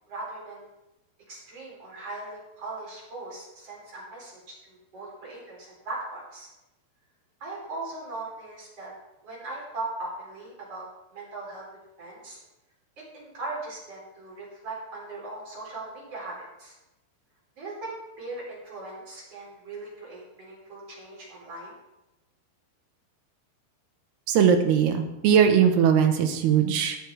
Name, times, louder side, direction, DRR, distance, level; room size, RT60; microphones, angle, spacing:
voice 1, 0.1-0.7 1.3-4.4 4.7-6.5 7.4-8.9 9.2-10.9 11.1-11.6 12.0-12.4 13.1-16.7 17.6-21.7, right 2 dB, 35° right, -5 dB, 4.8 m, -39 dB
voice 2, 24.3-27.0, right 8 dB, 70° right, 5 dB, 3.0 m, -20 dB
18.5 x 6.5 x 4.7 m, 0.94 s
omnidirectional pair, 5.1 m